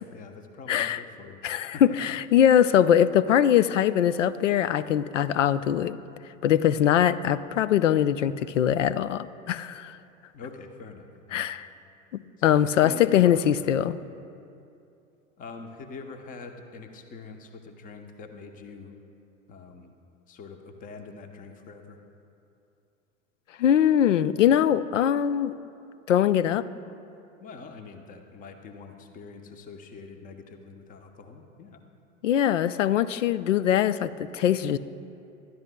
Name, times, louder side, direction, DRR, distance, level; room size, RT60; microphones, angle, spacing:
voice 1, 0.1-1.4 1.7-1.8 10.3-11.5 12.4-13.9 15.4-18.9 19.5-19.9 20.3-22.0 27.4-31.8, left 4 dB, 20° left, 6 dB, 0.9 m, -44 dB
voice 2, 0.7-1.0 1.4-6.0 6.4-10.0 11.3-11.7 12.4-14.0 23.6-25.5 26.1-26.7 32.2-34.8, left 10 dB, 65° left, 16 dB, 0.6 m, -22 dB
25.0 x 13.0 x 2.2 m, 2.6 s
figure-of-eight pair, 90°, 41 cm